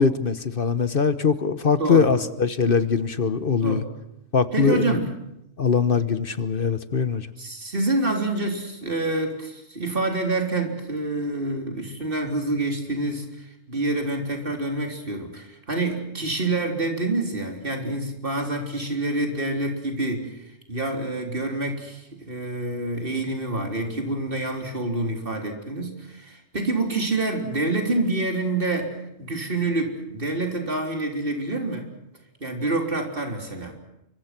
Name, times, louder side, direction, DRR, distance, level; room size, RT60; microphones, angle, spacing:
voice 1, 0.0-3.8 4.3-5.0 5.6-7.3, left 5 dB, 45° left, 13 dB, 1.3 m, -22 dB
voice 2, 1.8-2.1 3.6-3.9 4.5-5.1 7.4-31.9 32.4-33.7, right 2 dB, 45° right, 3 dB, 4.0 m, -27 dB
28.0 x 24.5 x 6.1 m, 0.85 s
omnidirectional pair, 1.3 m